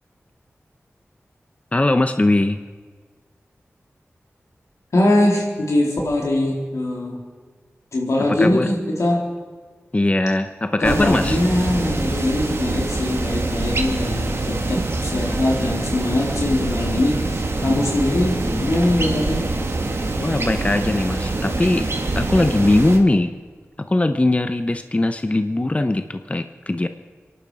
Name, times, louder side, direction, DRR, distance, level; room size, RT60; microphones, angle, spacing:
voice 1, 1.7-2.6 8.3-8.7 9.9-11.4 20.2-21.9 22.2-23.3 23.9-26.9, left 2 dB, 25° left, 9 dB, 0.8 m, -20 dB
voice 2, 4.9-7.2 7.9-9.2 10.8-19.5, left 1 dB, 85° left, -1 dB, 3.6 m, -22 dB
sound 1, 10.8-23.0, right 2 dB, 55° right, 1.9 m, -25 dB
25.0 x 11.0 x 4.9 m, 1.5 s
wide cardioid pair, 65°, 5 cm